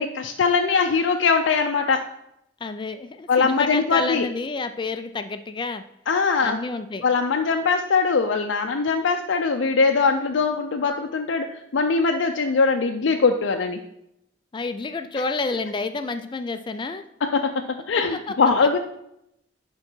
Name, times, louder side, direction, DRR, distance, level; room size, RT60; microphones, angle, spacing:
voice 1, 0.0-2.0 3.3-4.3 6.1-6.6 7.0-13.8 17.2-18.8, left 4 dB, 85° left, 4 dB, 0.5 m, -21 dB
voice 2, 2.6-5.8 6.4-7.0 14.5-17.0 17.9-18.0 18.3-18.4, left 3 dB, 25° left, 9 dB, 0.4 m, -29 dB
10.5 x 3.8 x 4.5 m, 0.81 s
head